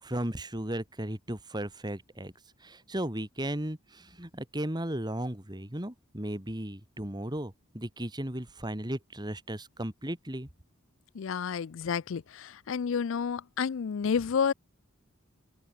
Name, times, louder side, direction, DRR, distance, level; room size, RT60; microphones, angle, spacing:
voice 1, 0.0-2.3 2.6-10.5, right 1 dB, 20° right, 2.6 m, -35 dB
voice 2, 11.1-14.5, left 6 dB, 65° left, 0.4 m, -30 dB
open air
head